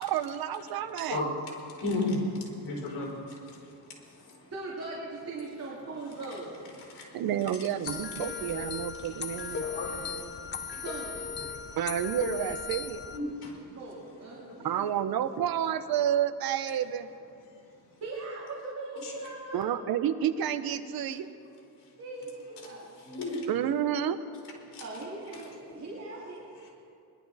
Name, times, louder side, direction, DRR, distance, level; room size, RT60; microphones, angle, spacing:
voice 1, 0.0-1.3 7.1-9.7 11.8-13.0 14.6-17.1 19.5-21.3 23.5-24.2, right 10 dB, 60° right, 12 dB, 0.8 m, -30 dB
voice 2, 1.8-3.7 4.3-4.4 6.9-7.1 7.8-7.9 9.5-10.3 10.7-10.8 13.1-13.6 19.0-19.1 20.8-20.9 23.0-23.4 24.7-24.8, left 2 dB, 70° left, -4 dB, 4.5 m, -34 dB
voice 3, 4.5-6.6 10.8-11.2 13.7-14.9 18.0-19.7 22.0-22.9 24.6-26.7, right 2 dB, 40° right, -6 dB, 2.7 m, -40 dB
sound 1, 7.9-13.2, left 6 dB, 25° left, 0.7 m, -37 dB
21.0 x 12.0 x 4.1 m, 2.5 s
cardioid pair, 115°, 40 cm